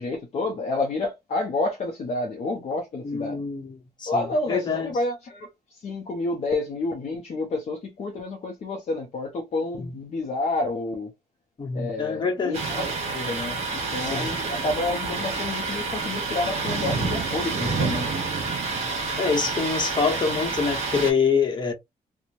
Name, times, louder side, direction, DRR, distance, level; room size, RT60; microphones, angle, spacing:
voice 1, 0.0-3.4 4.1-11.1 11.7-18.3, left 2 dB, 45° left, 0.6 m, -29 dB
voice 2, 3.0-4.9 9.8-9.9 11.6-12.6 14.1-14.3 19.2-21.7, left 5 dB, 30° left, 1.0 m, -25 dB
Thunder, 12.5-21.1, right 4 dB, 45° right, 0.9 m, -28 dB
2.9 x 2.1 x 2.5 m
cardioid pair, 130°, 15 cm